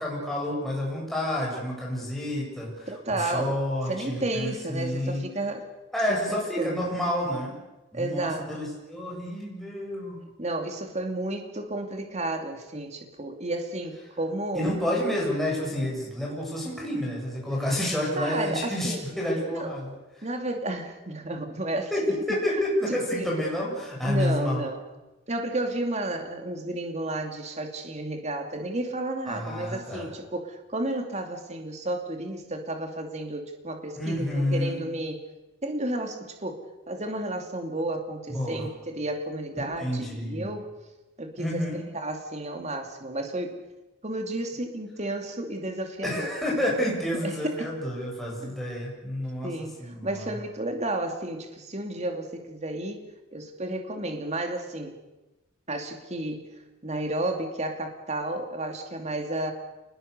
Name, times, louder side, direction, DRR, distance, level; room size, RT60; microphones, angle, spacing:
voice 1, 0.0-5.2 5.9-7.6 7.9-10.2 14.5-19.9 20.2-20.3 21.9-24.6 29.3-30.1 34.0-34.8 38.3-38.7 39.8-40.5 41.4-41.8 46.0-50.3, left 1 dB, ahead, -4 dB, 7.5 m, -29 dB
voice 2, 2.9-3.6 3.9-5.7 6.1-6.8 7.9-8.7 10.4-14.7 18.2-19.0 19.5-19.7 20.2-21.9 22.9-23.3 24.0-24.8 25.3-35.2 35.6-40.7 41.2-43.6 44.0-46.3 47.2-47.7 48.4-48.5 49.4-53.0 53.3-55.0 55.7-59.5, right 1 dB, 35° right, 5 dB, 2.5 m, -32 dB
28.5 x 20.5 x 6.7 m, 1.0 s
head